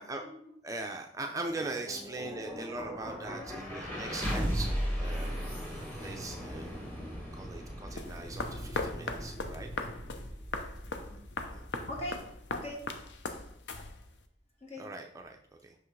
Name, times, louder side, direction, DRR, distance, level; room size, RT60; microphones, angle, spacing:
voice 1, 0.0-0.4 2.1-2.7 3.1-3.4 10.6-11.2 11.9-12.8 14.6-14.9, left 1 dB, 35° left, -1 dB, 1.6 m, -44 dB
voice 2, 0.6-5.4 5.6-6.7 7.3-9.7 11.5-11.6 14.8-15.4 15.6-15.7, right 2 dB, 20° right, 3 dB, 0.5 m, -40 dB
sound 1, 1.3-13.3, equal, 15° left, 2.2 m, -38 dB
sound 2, 8.0-14.3, left 3 dB, 70° left, 0.6 m, -39 dB
5.8 x 5.6 x 3.2 m, 0.64 s
head